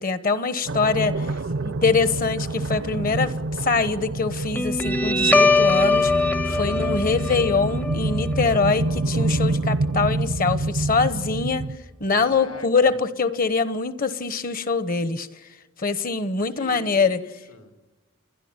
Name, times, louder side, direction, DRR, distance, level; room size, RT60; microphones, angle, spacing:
voice 1, 0.0-1.1 1.6-6.1 6.6-11.7 12.0-15.3 15.8-17.2, left 4 dB, 40° left, 14 dB, 1.1 m, -23 dB
voice 2, 0.5-1.7 6.4-7.1 12.1-12.9 16.5-17.7, left 3 dB, 80° left, 5 dB, 3.0 m, -43 dB
sound 1, 0.7-11.8, right 2 dB, 65° right, 0.6 m, -27 dB
Guitar, 4.5-11.5, left 2 dB, 10° left, 0.6 m, -23 dB
29.5 x 11.0 x 9.7 m, 1.1 s
head